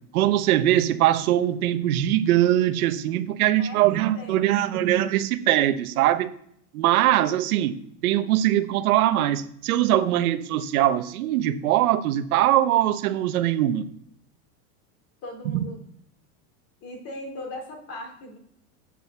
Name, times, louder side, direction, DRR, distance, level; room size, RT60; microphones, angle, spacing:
voice 1, 0.1-6.3 6.7-7.8 8.0-13.8, right 13 dB, 75° right, 1.2 m, -22 dB
voice 2, 3.6-4.9 15.2-15.8 16.8-18.4, left 1 dB, 30° left, 3.3 m, -39 dB
8.8 x 6.7 x 7.3 m
supercardioid pair, 160°, 43 cm